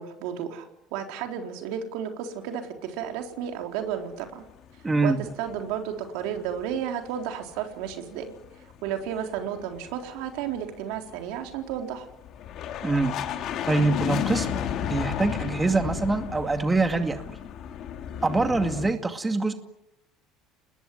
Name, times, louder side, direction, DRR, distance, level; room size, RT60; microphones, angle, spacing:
voice 1, 0.0-4.4 5.0-8.3 8.8-12.1, right 9 dB, 75° right, 4 dB, 3.9 m, -32 dB
sound 1, 4.8-5.7 6.0-6.9 7.1-18.9, left 9 dB, 55° left, 2.9 m, -33 dB
voice 2, 4.8-5.2 12.8-13.2 13.7-14.5 14.9-17.2 18.2-19.5, right 3 dB, 15° right, 7 dB, 2.3 m, -24 dB
29.0 x 20.5 x 9.9 m, 0.89 s
supercardioid pair, 100°, 0 cm